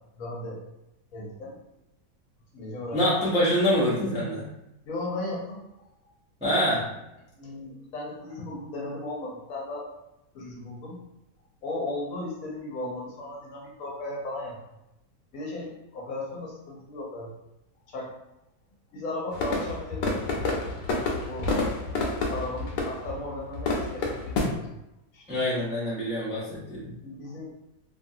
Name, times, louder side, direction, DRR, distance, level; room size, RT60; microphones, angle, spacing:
voice 1, 0.1-0.6 1.1-1.6 2.5-3.0 4.8-5.6 7.4-9.9 10.3-11.0 11.6-14.6 15.3-17.3 17.9-18.1 18.9-20.6 21.3-21.5 22.3-24.7 25.1-25.3 27.0-27.5, left 2 dB, 65° left, -3 dB, 1.1 m, -36 dB
voice 2, 2.9-4.5 6.4-6.9 25.3-26.9, equal, 10° right, -8 dB, 0.4 m, -25 dB
sound 1, 19.3-24.5, left 3 dB, 85° left, 1.2 m, -29 dB
2.9 x 2.4 x 2.6 m, 0.90 s
omnidirectional pair, 1.7 m